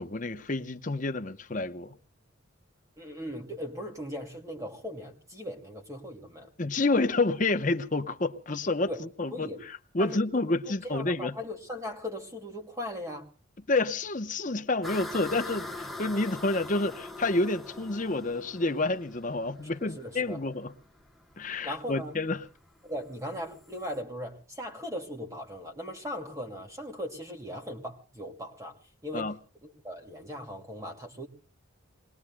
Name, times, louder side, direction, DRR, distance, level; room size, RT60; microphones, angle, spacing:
voice 1, 0.0-1.9 6.6-9.5 9.9-11.3 13.7-20.7 21.4-22.4 29.1-29.4, left 2 dB, 40° left, 0.9 m, -29 dB
voice 2, 3.0-6.5 8.9-9.0 9.3-9.6 10.0-10.3 10.6-13.3 19.7-20.4 21.6-22.2 22.9-29.3 29.6-31.3, left 1 dB, 15° right, 2.4 m, -38 dB
sound 1, 14.8-24.0, left 2 dB, ahead, 0.9 m, -43 dB
28.5 x 21.0 x 2.3 m
head